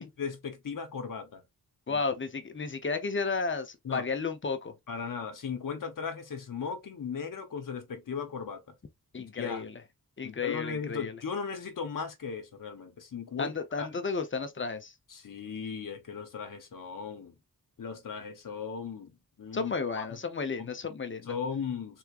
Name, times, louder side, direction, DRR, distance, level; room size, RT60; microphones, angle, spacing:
voice 1, 0.0-1.4 1.9-2.0 3.8-4.1 4.9-8.6 9.2-9.6 10.2-13.9 15.1-17.4 17.8-20.2 20.6-20.7 21.3-22.0, left 6 dB, 60° left, 0.9 m, -37 dB
voice 2, 1.9-4.7 9.1-9.8 10.2-11.2 13.4-14.9 19.5-21.3, left 4 dB, 35° left, 0.7 m, -33 dB
3.5 x 3.1 x 2.4 m
wide cardioid pair, 75°, 36 cm